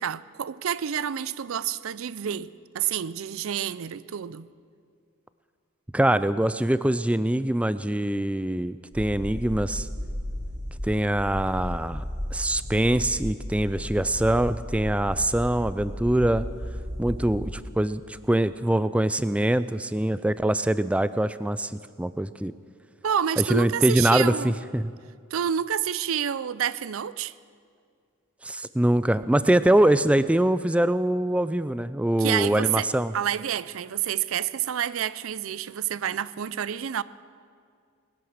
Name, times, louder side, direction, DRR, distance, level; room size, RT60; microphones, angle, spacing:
voice 1, 0.0-4.5 23.0-24.6 25.3-27.3 32.2-32.9 33.1-37.0, right 9 dB, 65° right, 0.4 m, -28 dB
voice 2, 5.9-9.9 10.8-12.0 12.3-16.5 17.0-21.7 22.0-22.5 23.4-24.9 28.4-33.1, right 1 dB, 5° right, 0.3 m, -23 dB
sound 1, 8.9-17.5, equal, 35° right, 4.5 m, -34 dB
20.0 x 10.5 x 6.5 m
head